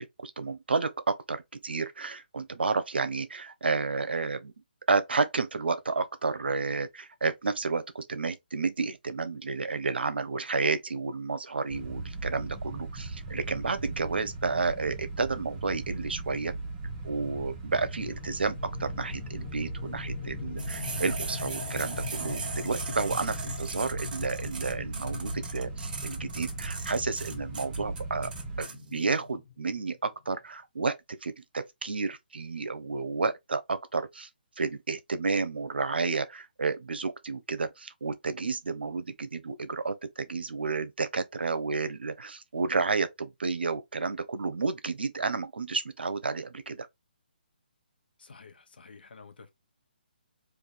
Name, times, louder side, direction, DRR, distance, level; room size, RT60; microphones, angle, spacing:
voice 1, 0.0-4.5 4.9-16.5 17.0-28.3 28.6-34.3 34.6-46.9, right 4 dB, 80° right, 0.8 m, -31 dB
sound 1, 11.7-28.6, right 3 dB, 20° right, 1.1 m, -38 dB
sound 2, 17.7-30.0, left 8 dB, 40° left, 0.7 m, -43 dB
sound 3, 20.6-28.7, right 4 dB, 55° right, 1.4 m, -39 dB
voice 2, 48.2-49.5, left 4 dB, 70° left, 1.2 m, -50 dB
3.5 x 2.6 x 4.0 m
hypercardioid pair, 150°, 5 cm